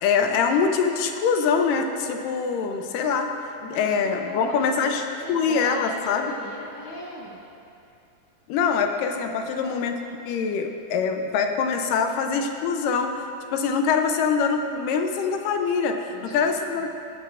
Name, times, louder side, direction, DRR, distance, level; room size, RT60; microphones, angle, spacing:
voice 1, 0.0-3.3 3.7-6.3 8.5-10.0 10.3-16.9, left 5 dB, 80° left, 5 dB, 2.3 m, -24 dB
voice 2, 3.6-4.7 5.0-7.4 9.4-9.8 16.1-16.5, left 1 dB, 30° left, -7 dB, 2.2 m, -39 dB
19.5 x 10.0 x 2.5 m, 2.7 s
omnidirectional pair, 3.9 m